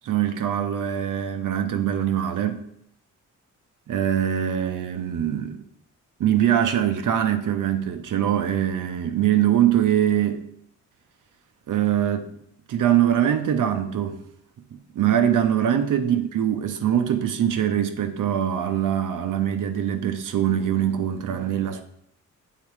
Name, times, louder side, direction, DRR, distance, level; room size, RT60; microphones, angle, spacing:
voice 1, 0.0-2.7 3.9-5.7 6.2-10.4 11.7-12.3 12.7-14.2 14.7-21.8, right 10 dB, 80° right, 0.6 m, -23 dB
7.2 x 3.8 x 4.8 m
cardioid pair, 90°, 31 cm